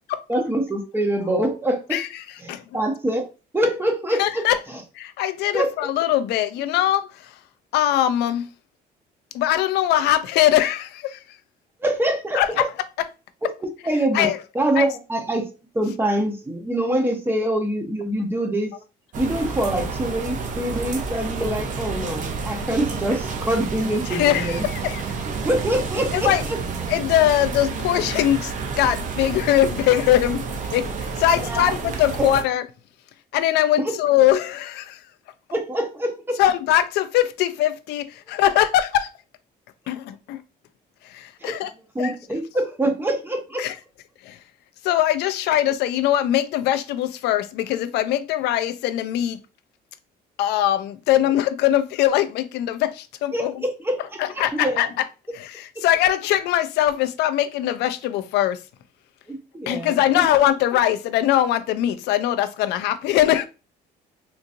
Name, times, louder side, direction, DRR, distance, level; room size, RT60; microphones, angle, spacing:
voice 1, 0.3-2.0 2.4-3.3 3.5-4.8 5.5-5.7 11.8-12.7 13.4-13.5 13.8-15.5 15.7-18.7 19.2-24.7 25.4-26.6 31.4-31.7 32.2-32.3 33.8-34.0 35.5-36.4 41.4-41.6 41.9-43.7 53.3-54.9 55.8-55.9 59.3-60.3, right 1 dB, 15° right, 0.8 m, -25 dB
voice 2, 4.2-4.6 5.0-7.3 7.7-8.5 9.3-11.2 12.3-12.7 14.1-14.4 14.8-14.9 24.1-25.2 26.1-26.4 26.9-30.4 30.7-32.6 33.3-35.0 36.4-39.1 39.9-40.4 41.0-41.7 42.0-42.1 43.6-43.7 44.2-44.4 44.8-49.4 50.4-53.6 54.2-54.9 55.3-58.6 59.7-63.5, left 12 dB, 80° left, 0.5 m, -21 dB
sound 1, 19.1-32.4, right 4 dB, 50° right, 0.7 m, -30 dB
3.8 x 2.6 x 2.6 m
cardioid pair, 110°, 17 cm